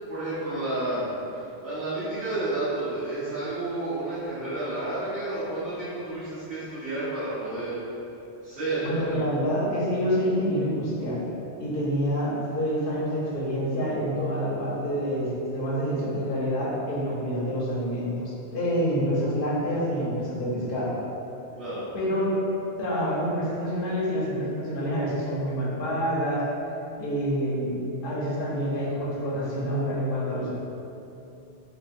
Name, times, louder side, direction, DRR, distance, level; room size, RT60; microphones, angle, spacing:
voice 1, 0.1-7.8 8.4-9.3 21.6-21.9, right 2 dB, 50° right, -17 dB, 1.2 m, -31 dB
voice 2, 8.8-11.2 11.6-21.0 21.9-22.3 22.8-26.4 27.0-30.5, equal, 55° left, -7 dB, 0.9 m, -27 dB
3.7 x 2.5 x 2.5 m, 2.8 s
omnidirectional pair, 1.2 m